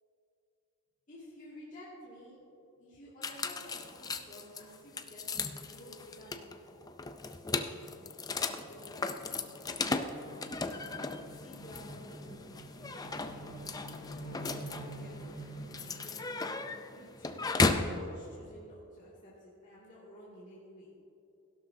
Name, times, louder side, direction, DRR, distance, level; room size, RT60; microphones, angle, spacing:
voice 1, 1.1-2.4 2.8-6.8 7.8-10.0 10.2-10.4 10.7-10.9 11.2-15.2 15.8-16.5 16.8-20.9, equal, 35° left, -9 dB, 2.3 m, -53 dB
sound 1, 3.2-18.0, left 3 dB, 15° left, 0.4 m, -36 dB
sound 2, 5.8-5.9 6.2-6.3 6.6-16.3, right 1 dB, 50° left, 3.0 m, -48 dB
16.0 x 12.0 x 2.7 m, 2.7 s
head